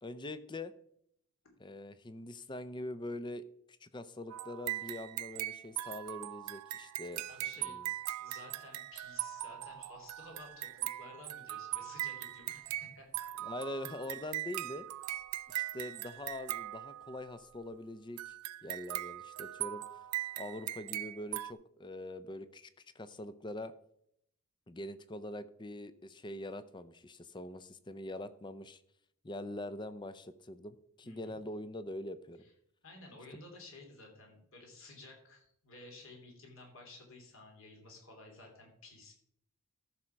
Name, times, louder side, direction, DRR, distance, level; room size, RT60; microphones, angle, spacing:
voice 1, 0.0-0.7 1.6-7.3 7.6-7.9 13.4-14.9 15.5-18.3 18.6-20.0 20.4-23.7 24.7-28.8 29.2-32.4, left 1 dB, 20° left, 13 dB, 0.5 m, -43 dB
sound 1, 4.3-17.4 18.2-21.5, right 15 dB, 90° right, 0.4 m, -40 dB
voice 2, 7.3-7.8 8.2-13.1 31.0-31.4 32.8-39.1, left 2 dB, 60° left, 1 dB, 3.0 m, -53 dB
13.5 x 6.3 x 4.5 m, 0.73 s
head